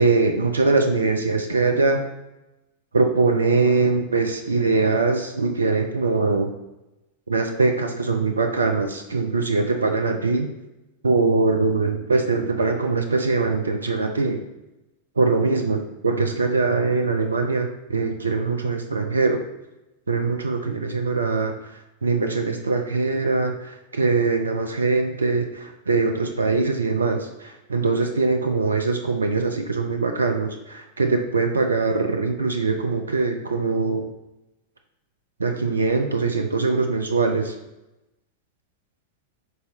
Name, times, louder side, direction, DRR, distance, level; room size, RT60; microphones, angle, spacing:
voice 1, 0.0-2.0 2.9-6.5 7.3-10.5 11.0-14.4 15.2-19.4 20.1-21.5 22.0-34.1 35.4-37.5, right 3 dB, 75° right, 4 dB, 0.3 m, -22 dB
5.4 x 4.0 x 2.3 m, 0.97 s
figure-of-eight pair, 90°, 0 cm